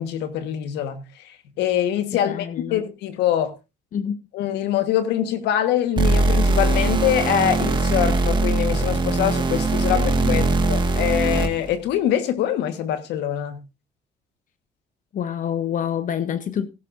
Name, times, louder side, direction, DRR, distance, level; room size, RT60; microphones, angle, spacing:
voice 1, 0.0-3.5 4.3-13.6, left 10 dB, 85° left, 1.5 m, -24 dB
voice 2, 2.1-2.8 3.9-4.2 9.9-10.6 15.1-16.7, left 8 dB, 50° left, 0.9 m, -27 dB
sound 1, 6.0-11.7, right 2 dB, 25° right, 1.8 m, -21 dB
16.5 x 11.0 x 2.6 m
cardioid pair, 110°, 17 cm